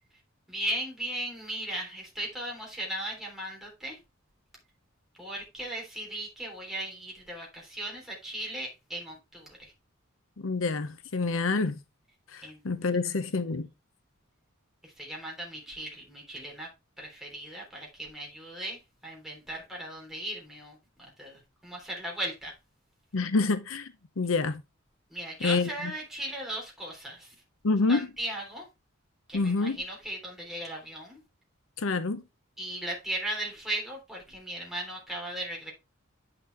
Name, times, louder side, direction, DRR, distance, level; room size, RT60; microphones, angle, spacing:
voice 1, 0.5-4.0 5.2-9.7 12.4-12.6 14.8-16.7 17.0-22.5 25.1-27.3 27.9-28.7 29.3-31.2 32.6-35.7, right 1 dB, ahead, 3.3 m, -37 dB
voice 2, 10.4-11.8 12.3-13.7 23.1-24.6 25.4-25.7 27.6-28.1 29.3-29.8 31.8-32.2, left 3 dB, 75° left, 0.7 m, -27 dB
9.4 x 5.9 x 3.3 m
head